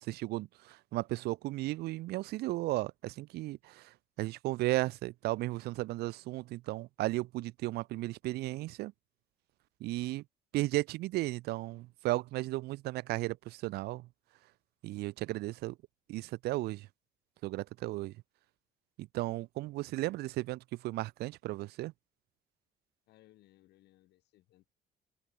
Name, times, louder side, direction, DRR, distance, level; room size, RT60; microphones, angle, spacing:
voice 1, 0.0-8.9 9.8-10.2 10.5-14.1 14.8-15.8 16.1-16.9 17.4-18.1 19.0-21.9, right 18 dB, 75° right, 0.5 m, -35 dB
voice 2, 23.1-24.7, left 16 dB, 75° left, 4.1 m, -64 dB
cardioid pair, 110°, 17 cm